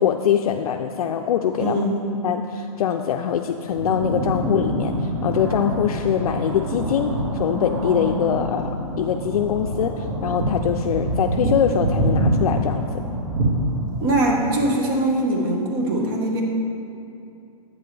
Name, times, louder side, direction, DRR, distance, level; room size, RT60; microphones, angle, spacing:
voice 1, 0.0-1.8 2.2-8.7 9.0-13.0, left 9 dB, 75° left, 4 dB, 0.4 m, -23 dB
voice 2, 1.6-2.0 14.0-16.4, right 1 dB, 35° right, 0 dB, 1.2 m, -22 dB
sound 1, 3.6-14.6, right 1 dB, 55° right, 1.8 m, -25 dB
8.4 x 6.8 x 3.3 m, 2.7 s
hypercardioid pair, 155°, 19 cm